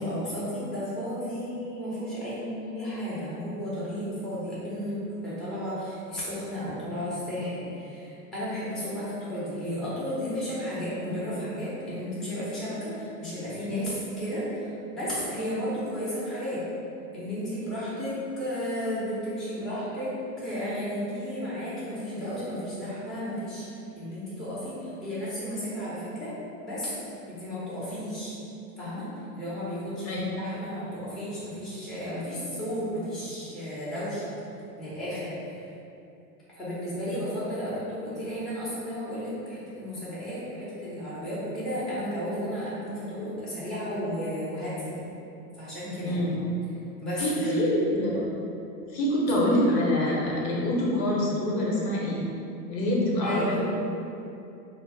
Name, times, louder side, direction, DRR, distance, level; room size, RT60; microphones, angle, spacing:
voice 1, 0.0-16.6 17.1-23.6 24.0-26.3 26.6-26.9 27.3-28.3 28.8-29.1 29.4-34.4 34.8-35.3 36.5-44.9 45.6-46.2 47.0-47.8 53.2-53.6, equal, ahead, -12 dB, 0.5 m, -33 dB
voice 2, 46.0-46.5 47.2-48.1 48.9-52.2 52.7-53.6, left 1 dB, 85° left, -4 dB, 1.0 m, -25 dB
2.4 x 2.0 x 3.7 m, 2.7 s
hypercardioid pair, 110°, 49 cm